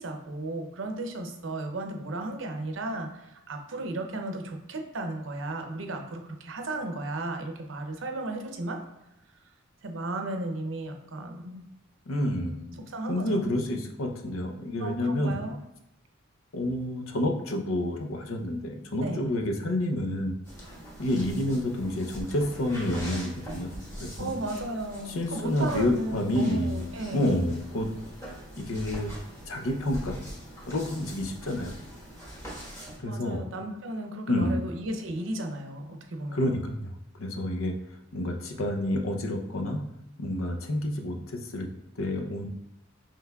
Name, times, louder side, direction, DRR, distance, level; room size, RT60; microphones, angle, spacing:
voice 1, 0.0-8.8 9.8-11.7 12.7-13.4 14.8-15.6 19.0-19.3 24.2-27.4 33.0-36.6, right 2 dB, 65° right, 4 dB, 0.6 m, -35 dB
voice 2, 12.1-15.4 16.5-20.4 21.0-24.3 25.1-26.8 27.1-27.9 28.6-29.1 29.5-30.2 30.7-31.7 33.0-33.4 34.3-34.6 36.3-36.9 37.2-37.8 38.1-39.8 40.2-41.7 42.0-42.5, left 1 dB, 80° left, 3 dB, 0.6 m, -29 dB
sound 1, 20.4-33.0, equal, 15° left, 1.3 m, -42 dB
5.7 x 3.2 x 2.3 m, 0.85 s
head